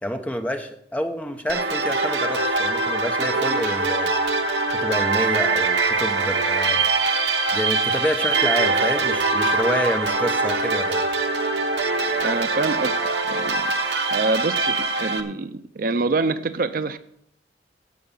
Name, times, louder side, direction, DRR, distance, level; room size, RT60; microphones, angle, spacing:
voice 1, 0.0-4.1 4.7-6.9 7.5-11.0, equal, 10° left, 5 dB, 0.9 m, -28 dB
sound 1, 1.5-15.2, right 3 dB, 75° right, 1.1 m, -23 dB
voice 2, 12.2-13.0 13.2-13.7 14.1-17.0, right 3 dB, 50° right, 12 dB, 0.5 m, -25 dB
16.0 x 5.6 x 5.5 m, 0.74 s
head